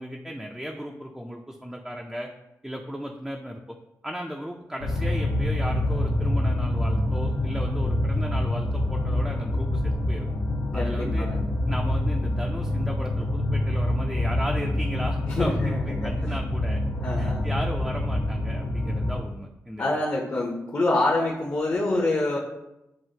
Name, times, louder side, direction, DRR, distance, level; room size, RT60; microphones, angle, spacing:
voice 1, 0.0-2.3 2.6-3.6 4.0-10.3 10.7-11.3 11.7-16.8 17.2-20.0, equal, ahead, 0 dB, 0.4 m, -35 dB
sound 1, 4.8-19.2, left 1 dB, 70° left, 0.7 m, -26 dB
voice 2, 10.7-11.4 15.3-16.1 17.0-17.4 19.8-22.4, left 2 dB, 40° left, -3 dB, 0.8 m, -26 dB
7.3 x 2.5 x 2.8 m, 0.91 s
cardioid pair, 65°, 6 cm